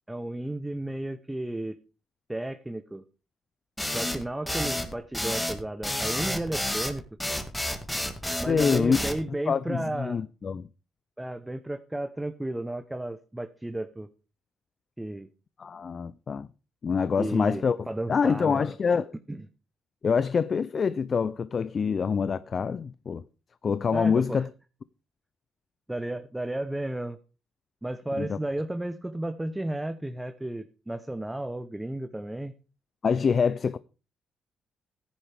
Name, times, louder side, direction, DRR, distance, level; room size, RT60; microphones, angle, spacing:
voice 1, 0.1-1.8 2.3-3.0 3.9-7.0 8.4-10.2 11.2-14.1 15.0-15.3 17.2-18.7 19.3-19.5 23.9-24.5 25.9-27.2 27.8-32.5, right 1 dB, 10° right, 0.9 m, -33 dB
sound 1, 3.8-9.2, left 1 dB, 10° left, 1.9 m, -30 dB
voice 2, 8.5-9.0 9.5-10.7 15.6-16.5 16.8-17.8 18.1-19.1 20.0-23.2 23.6-24.5 28.2-28.4 33.0-33.8, left 6 dB, 45° left, 0.5 m, -25 dB
15.0 x 10.5 x 3.5 m
cardioid pair, 90°, 0 cm